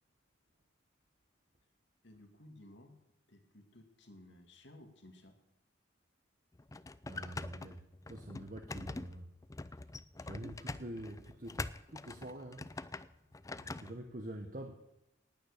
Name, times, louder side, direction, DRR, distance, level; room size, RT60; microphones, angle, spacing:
voice 1, 2.0-3.0 3.3-5.4, left 1 dB, 60° left, 5 dB, 2.2 m, -57 dB
sound 1, 6.5-13.9, left 2 dB, 15° left, 0.4 m, -44 dB
voice 2, 7.1-9.3 9.7-9.8 10.2-12.7 13.5-14.7, right 1 dB, 45° right, 4 dB, 1.3 m, -46 dB
18.5 x 9.6 x 6.7 m, 0.87 s
head